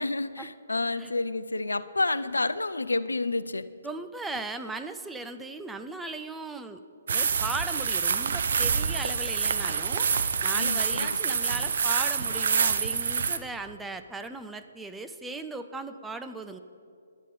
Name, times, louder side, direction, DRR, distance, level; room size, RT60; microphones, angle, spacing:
voice 1, 0.0-3.7 10.5-11.2, left 2 dB, 80° left, 15 dB, 0.4 m, -29 dB
voice 2, 3.8-6.8 7.1-10.1 10.4-16.6, right 3 dB, 5° right, 8 dB, 0.4 m, -37 dB
sound 1, 7.1-13.4, right 6 dB, 55° right, 0.6 m, -26 dB
11.0 x 8.9 x 5.2 m, 2.4 s
figure-of-eight pair, 130°, 0 cm